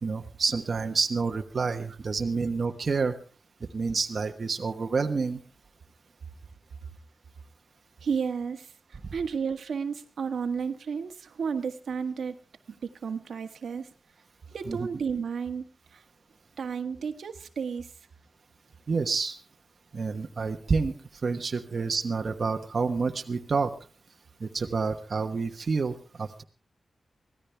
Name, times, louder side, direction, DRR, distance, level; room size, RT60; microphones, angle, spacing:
voice 1, 0.0-3.2 3.7-5.4 14.7-14.8 18.9-19.4 19.9-20.9 21.2-23.7 24.4-26.4, right 4 dB, 45° right, 5 dB, 1.2 m, -28 dB
voice 2, 8.0-12.4 12.7-13.9 14.5-16.0 16.6-17.9, right 6 dB, 85° right, 7 dB, 1.4 m, -32 dB
24.0 x 16.0 x 3.4 m, 0.35 s
wide cardioid pair, 140°, 0 cm